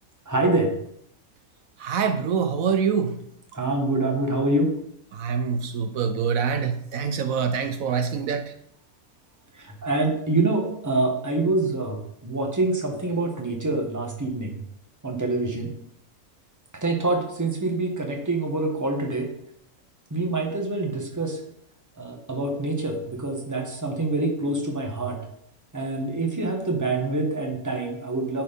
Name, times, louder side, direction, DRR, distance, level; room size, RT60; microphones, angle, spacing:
voice 1, 0.3-0.7 3.5-4.7 9.6-14.6 15.0-15.7 16.8-19.3 20.1-21.4 22.0-25.2 25.7-28.4, right 2 dB, 15° right, 1 dB, 1.3 m, -26 dB
voice 2, 1.8-3.1 5.1-8.4, right 6 dB, 75° right, 9 dB, 1.0 m, -25 dB
9.7 x 4.6 x 5.2 m, 0.71 s
omnidirectional pair, 1.5 m